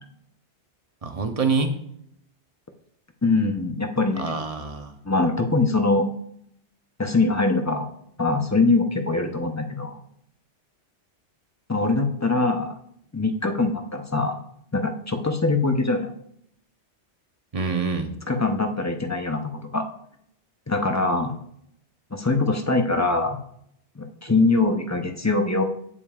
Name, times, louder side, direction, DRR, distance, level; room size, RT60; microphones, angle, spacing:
voice 1, 1.0-1.7 4.2-5.0 17.5-18.1, right 4 dB, 35° right, 5 dB, 0.9 m, -26 dB
voice 2, 3.2-4.4 5.0-6.0 7.0-7.9 8.2-10.0 11.7-12.8 13.1-14.4 14.7-16.1 18.3-19.8 20.7-21.4 22.1-23.4 24.0-25.6, left 3 dB, 20° left, 5 dB, 0.6 m, -23 dB
15.5 x 5.3 x 2.5 m, 0.71 s
omnidirectional pair, 1.2 m